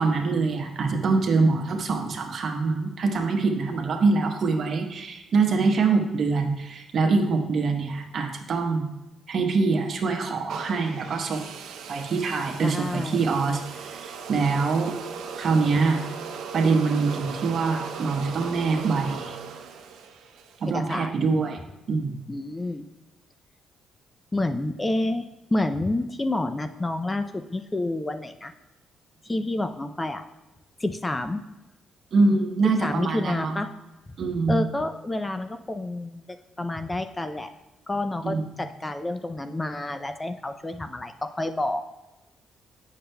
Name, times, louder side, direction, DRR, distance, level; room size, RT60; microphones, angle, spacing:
voice 1, 0.0-8.9 9.3-11.5 11.9-14.9 15.4-16.0 16.5-19.4 20.6-21.6 21.9-22.2 32.1-33.6 34.2-34.6 38.2-38.4, right 4 dB, 55° right, 3 dB, 1.0 m, -24 dB
sound 1, 10.5-20.7, right 6 dB, 85° right, 0.6 m, -38 dB
voice 2, 12.6-13.2 20.7-21.1 22.3-22.9 24.3-28.5 29.2-30.2 30.8-31.4 32.8-33.7 34.5-37.5 37.9-41.8, left 2 dB, 20° left, 8 dB, 0.4 m, -29 dB
8.5 x 6.5 x 2.2 m, 1.0 s
cardioid pair, 90°, 0 cm